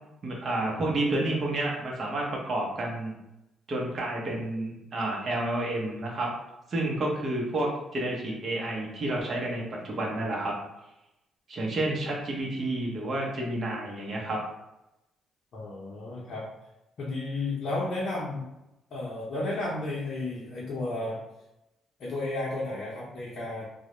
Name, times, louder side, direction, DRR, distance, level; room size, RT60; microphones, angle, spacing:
voice 1, 0.2-3.1 3.7-6.3 6.7-10.6 11.5-14.4, right 1 dB, 50° right, -2 dB, 0.7 m, -30 dB
voice 2, 15.5-16.5 17.0-18.5 18.9-21.2 22.0-23.7, left 2 dB, 60° left, -7 dB, 0.6 m, -33 dB
2.2 x 2.0 x 2.9 m, 0.92 s
cardioid pair, 90°, 0 cm